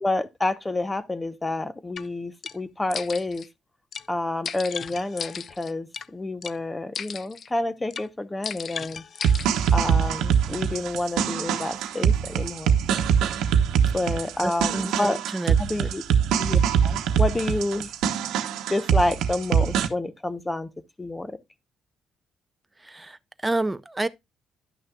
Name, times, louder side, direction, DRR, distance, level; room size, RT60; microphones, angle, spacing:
voice 1, 0.0-3.4 4.1-9.0 9.7-12.7 13.9-15.2 15.6-16.0 16.4-17.9 18.7-20.7 21.0-21.4, left 2 dB, 15° left, 0.9 m, -29 dB
sound 1, 2.0-2.1 2.4-2.6 2.9-3.5 3.9-4.1 4.5-6.1 6.4-6.6 7.0-7.5 7.9-8.1 8.4-9.7, left 7 dB, 45° left, 0.4 m, -35 dB
sound 2, 9.2-19.9, right 7 dB, 90° right, 0.9 m, -23 dB
voice 2, 14.4-15.9 22.8-24.1, right 2 dB, 10° right, 0.6 m, -30 dB
11.0 x 6.3 x 2.3 m
cardioid pair, 110°, 0 cm